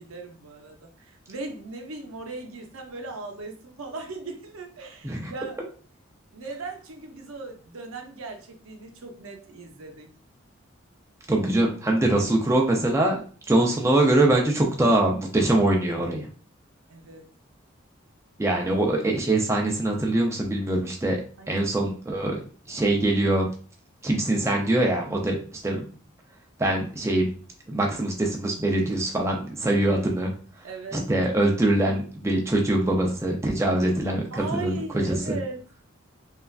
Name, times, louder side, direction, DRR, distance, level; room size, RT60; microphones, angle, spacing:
voice 1, 0.0-5.6 6.3-10.1 16.9-17.3 21.4-21.6 30.6-31.0 34.3-35.8, right 3 dB, 90° right, 4 dB, 0.6 m, -38 dB
voice 2, 11.3-13.2 13.5-16.3 18.4-21.2 21.5-22.4 22.7-23.5 24.0-25.8 26.6-27.3 27.7-30.3 30.9-35.4, right 1 dB, 15° right, 0 dB, 0.4 m, -23 dB
3.1 x 2.4 x 2.3 m, 0.41 s
head